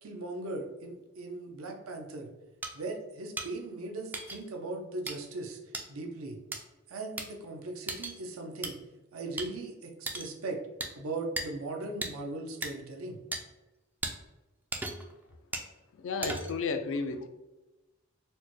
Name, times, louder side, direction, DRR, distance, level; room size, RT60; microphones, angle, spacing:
voice 1, 0.0-2.3 2.7-5.6 5.9-6.4 6.9-8.8 9.1-10.6 10.9-13.2, right 2 dB, 80° right, 2 dB, 0.6 m, -38 dB
sound 1, 2.6-2.7 3.4-3.5 4.1-4.4 5.1-5.2 5.7-5.9 6.5-6.6 7.2-7.3 7.9-8.2 8.6-8.7 9.4-9.5 10.1-10.3 10.8-10.9 11.4-11.5 12.0-12.1 12.6-12.7 13.3-13.4 14.0-14.1 14.7-15.1 15.5-15.7 16.2-16.6, right 2 dB, 10° right, 0.3 m, -35 dB
voice 2, 15.9-17.3, left 4 dB, 65° left, 8 dB, 0.4 m, -33 dB
4.3 x 2.1 x 3.0 m, 1.1 s
head